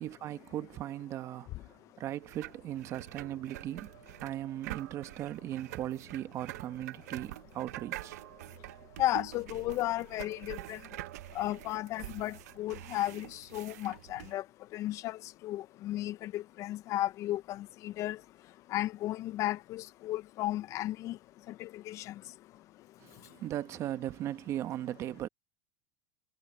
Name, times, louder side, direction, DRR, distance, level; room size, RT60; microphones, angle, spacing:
voice 1, 0.0-3.9 4.2-8.2 23.0-25.3, right 12 dB, 35° right, 1.1 m, -38 dB
sound 1, 2.2-14.3, right 16 dB, 85° right, 0.6 m, -46 dB
voice 2, 9.0-10.8 11.3-14.4 14.7-18.2 18.7-21.2 21.5-22.1, left 15 dB, 35° left, 0.4 m, -34 dB
supercardioid pair, 150°, 9 cm